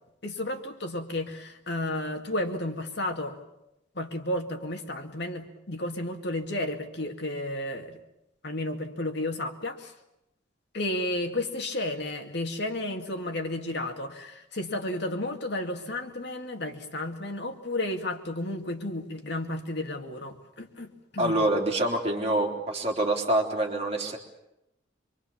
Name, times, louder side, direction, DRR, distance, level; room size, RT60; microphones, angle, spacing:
voice 1, 0.2-3.4 4.0-8.0 8.4-9.9 10.7-21.4, left 1 dB, 60° left, 4 dB, 2.2 m, -32 dB
voice 2, 21.2-24.2, right 1 dB, 35° right, 1 dB, 3.5 m, -26 dB
26.0 x 24.0 x 7.2 m, 0.88 s
head